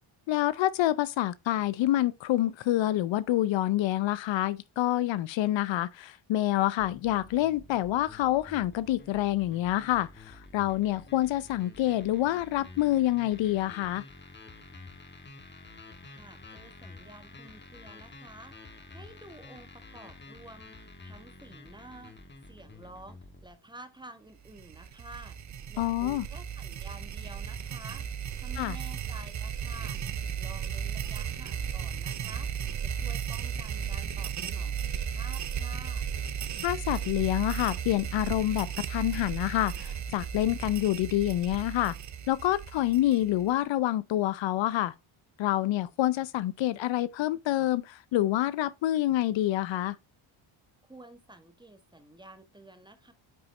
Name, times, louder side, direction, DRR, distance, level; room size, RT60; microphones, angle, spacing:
voice 1, 0.3-14.1 25.8-26.3 28.6-28.8 36.6-42.0 42.3-44.9 45.4-50.0, left 14 dB, 65° left, 0.6 m, -27 dB
sound 1, 6.8-23.5, left 2 dB, 20° left, 1.5 m, -50 dB
voice 2, 16.0-18.5 18.9-22.1 22.5-28.1 28.4-30.0 30.4-32.5 32.8-36.1 50.8-53.1, right 2 dB, 10° right, 1.3 m, -50 dB
sound 2, 24.5-43.5, right 8 dB, 35° right, 0.7 m, -35 dB
9.4 x 3.9 x 3.1 m
cardioid pair, 90°, 49 cm